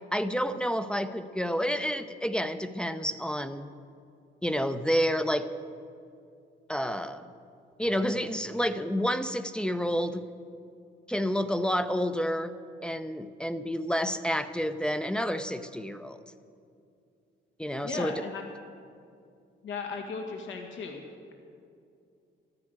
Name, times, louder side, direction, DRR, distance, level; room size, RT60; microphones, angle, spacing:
voice 1, 0.1-3.7 4.4-5.5 6.7-7.3 7.8-10.2 11.1-12.5 12.8-16.2 17.6-18.1, equal, 5° left, 10 dB, 0.7 m, -29 dB
voice 2, 17.8-18.4 19.6-21.0, left 4 dB, 75° left, 2 dB, 1.9 m, -36 dB
13.5 x 11.0 x 8.2 m, 2.5 s
cardioid pair, 90°, 20 cm